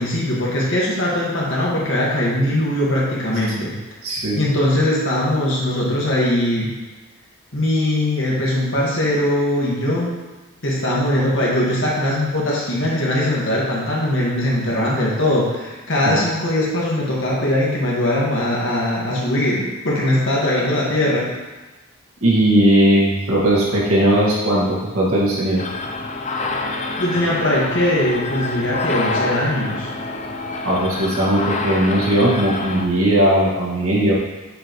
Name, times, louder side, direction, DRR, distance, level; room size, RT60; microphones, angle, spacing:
voice 1, 0.0-3.7 4.4-6.7 7.5-10.1 10.6-21.3 27.0-29.9, left 1 dB, 60° left, -5 dB, 1.7 m, -20 dB
voice 2, 4.0-4.4 16.0-16.2 22.2-25.6 30.6-34.1, right 1 dB, 90° right, -6 dB, 1.9 m, -18 dB
sound 1, 25.6-32.9, left 3 dB, 30° left, 0.4 m, -27 dB
7.6 x 5.1 x 3.1 m, 1.2 s
head